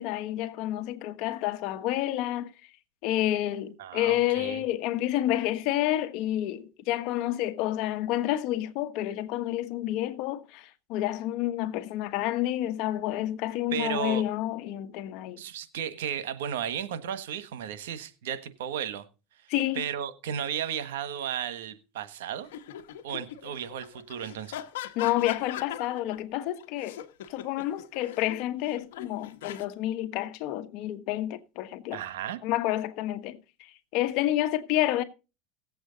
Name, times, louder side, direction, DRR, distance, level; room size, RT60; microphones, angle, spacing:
voice 1, 0.0-2.5 3.0-15.4 19.5-19.8 24.9-27.0 27.3-32.0 32.4-35.0, left 14 dB, 65° left, 1.4 m, -29 dB
voice 2, 3.8-4.6 13.7-14.2 15.4-19.0 19.7-22.5 23.0-24.6 31.9-32.4, right 9 dB, 90° right, 1.3 m, -34 dB
sound 1, 22.4-26.2 26.6-29.6, left 11 dB, 90° left, 1.2 m, -41 dB
17.5 x 8.0 x 3.9 m
supercardioid pair, 105°, 0 cm